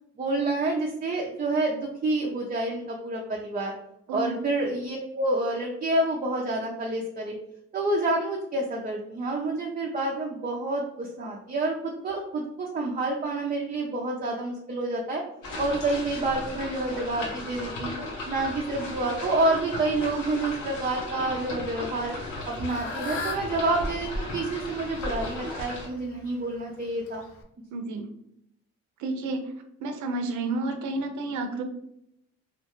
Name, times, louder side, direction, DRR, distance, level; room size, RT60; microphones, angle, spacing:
voice 1, 0.2-3.7 4.1-7.3 7.7-15.2 15.6-18.0 18.3-22.1 22.5-27.2, right 2 dB, 30° right, -2 dB, 0.5 m, -28 dB
sound 1, 15.4-25.9, left 1 dB, 80° left, 0.9 m, -36 dB
Fowl / Bird, 22.1-27.4, left 4 dB, 50° left, 0.5 m, -41 dB
voice 2, 27.7-28.1 29.0-29.5 29.8-31.6, right 2 dB, 70° right, 5 dB, 0.6 m, -30 dB
2.8 x 2.1 x 2.9 m, 0.78 s
cardioid pair, 90°, 30 cm